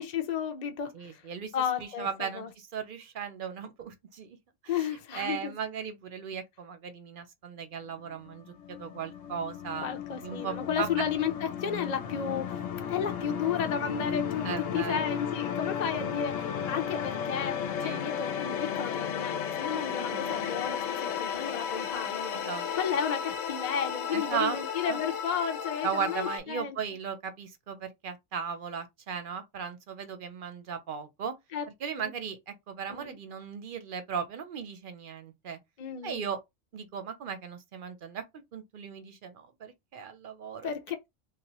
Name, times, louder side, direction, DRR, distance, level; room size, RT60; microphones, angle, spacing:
voice 1, 0.0-1.2 1.5-2.5 4.7-5.5 9.8-12.6 12.9-22.4 22.8-26.8 31.5-31.6 32.0-32.1 32.9-33.2 35.8-36.3 40.6-41.0, left 8 dB, 45° left, 0.5 m, -33 dB
voice 2, 0.9-1.5 1.8-4.4 4.6-4.9 5.1-9.9 10.2-11.0 14.4-15.1 17.8-18.0 20.0-20.3 22.3-22.7 24.1-24.6 24.8-25.0 25.8-31.3 31.8-35.6 36.0-36.4 36.7-38.2 38.5-40.7, right 7 dB, 55° right, 0.7 m, -37 dB
sound 1, 8.0-26.4, left 8 dB, 80° left, 1.0 m, -34 dB
3.2 x 2.5 x 2.9 m
omnidirectional pair, 1.3 m